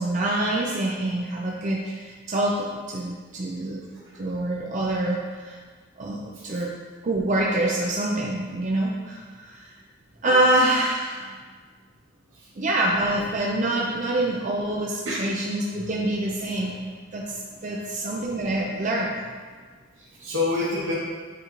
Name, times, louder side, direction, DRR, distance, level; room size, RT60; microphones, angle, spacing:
voice 1, 0.0-3.8 4.2-5.6 6.0-6.7 7.0-9.7 10.2-11.3 12.6-16.8 17.1-19.2, right 1 dB, 40° right, -2 dB, 0.5 m, -26 dB
voice 2, 6.3-6.6 10.2-10.5 12.3-12.5 13.7-13.8 15.0-15.3 15.8-15.9 16.4-16.5 20.0-20.9, left 2 dB, 90° right, -7 dB, 1.0 m, -30 dB
8.2 x 3.8 x 3.0 m, 1.5 s
head